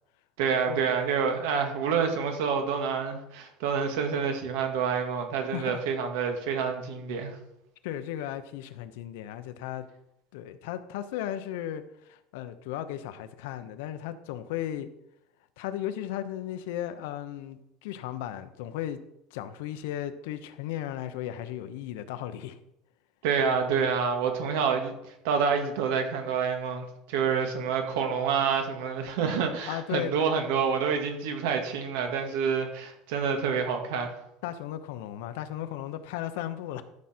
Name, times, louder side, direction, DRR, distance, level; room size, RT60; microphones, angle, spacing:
voice 1, 0.4-7.4 23.2-24.9 25.2-34.1, right 6 dB, 80° right, 5 dB, 2.1 m, -28 dB
voice 2, 5.4-5.8 7.8-9.9 10.3-14.9 15.6-19.0 19.3-22.6 24.4-24.6 29.7-30.4 34.4-36.8, left 11 dB, 85° left, 11 dB, 0.9 m, -35 dB
13.0 x 6.4 x 4.5 m, 0.83 s
cardioid pair, 175°, 0 cm